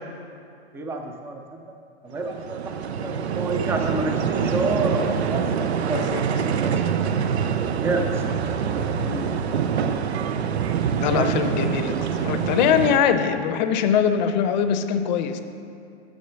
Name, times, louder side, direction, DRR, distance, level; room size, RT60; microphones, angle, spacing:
voice 1, 0.7-1.8 2.0-5.5 5.9-6.0 6.6-7.0 7.4-10.0 11.1-11.4, right 2 dB, 10° right, 4 dB, 0.4 m, -30 dB
sound 1, 2.2-13.0, right 7 dB, 85° right, 0.6 m, -25 dB
voice 2, 11.0-15.4, left 8 dB, 45° left, 10 dB, 0.6 m, -22 dB
6.7 x 6.3 x 6.8 m, 2.5 s
hypercardioid pair, 135°, 31 cm